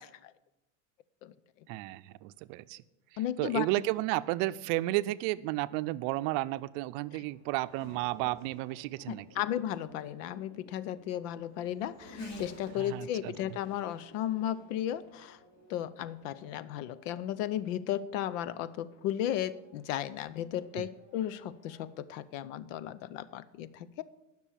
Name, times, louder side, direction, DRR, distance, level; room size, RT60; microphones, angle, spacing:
voice 1, 1.7-2.8 3.4-9.3 12.8-13.3 20.8-20.9, right 18 dB, 65° right, 15 dB, 0.6 m, -32 dB
voice 2, 3.2-3.7 9.1-15.4 15.7-24.0, left 11 dB, 90° left, 17 dB, 0.7 m, -35 dB
Race car auto racing / Accelerating revving vroom, 5.9-22.0, left 2 dB, 45° left, 2.7 m, -53 dB
10.0 x 6.2 x 8.4 m, 0.98 s
supercardioid pair, 130°, 37 cm